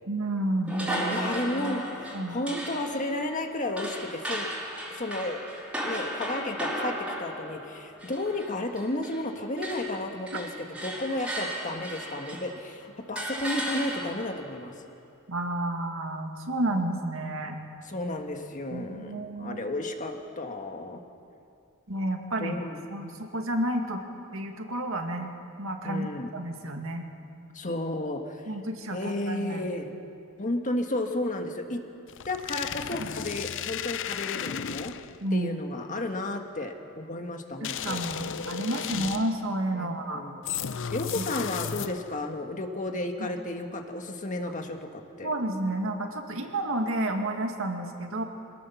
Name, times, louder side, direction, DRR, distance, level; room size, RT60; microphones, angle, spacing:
voice 1, 0.1-1.8 2.1-2.4 15.3-17.6 18.7-19.6 21.9-24.0 24.3-25.3 25.6-27.0 28.5-29.7 33.0-33.1 35.2-35.5 37.6-40.3 41.1-41.3 43.2-43.3 45.2-48.2, right 1 dB, 65° right, 3 dB, 2.1 m, -31 dB
sound 1, 0.7-9.3 9.6-12.6 13.2-14.4, equal, 5° right, 4.3 m, -35 dB
voice 2, 1.1-4.5 4.9-5.4 5.8-14.7 17.8-21.0 22.4-22.8 25.8-26.3 27.5-28.4 28.9-29.9 30.4-31.8 32.2-34.9 35.3-38.0 38.9-39.2 39.7-40.5 40.9-45.3, left 1 dB, 35° left, 4 dB, 1.6 m, -33 dB
sound 2, 32.1-35.2 37.6-39.5 40.5-42.2, left 8 dB, 60° left, 0.6 m, -34 dB
25.5 x 18.5 x 7.1 m, 2.6 s
head